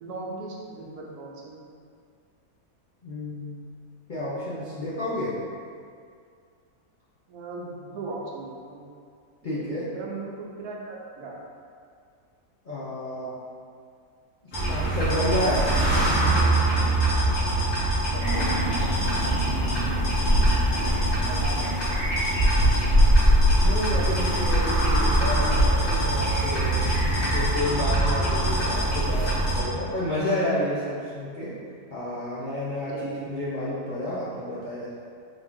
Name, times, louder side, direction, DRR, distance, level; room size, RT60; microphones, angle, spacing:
voice 1, 0.0-1.6 7.3-8.8 9.4-11.3 17.6-17.8 18.1-18.9 21.3-21.7 32.9-33.3, right 3 dB, 80° right, -2 dB, 1.2 m, -38 dB
voice 2, 3.0-3.7 4.1-5.3 9.4-9.8 12.6-13.3 14.7-15.6 20.3-21.6 23.6-26.8 27.3-31.5 31.9-34.9, left 1 dB, 50° left, -9 dB, 0.6 m, -30 dB
sound 1, 14.5-29.6, right 1 dB, 75° left, 1.8 m, -25 dB
sound 2, 18.2-27.6, equal, 5° left, 1.3 m, -24 dB
4.1 x 3.1 x 3.5 m, 2.2 s
omnidirectional pair, 1.6 m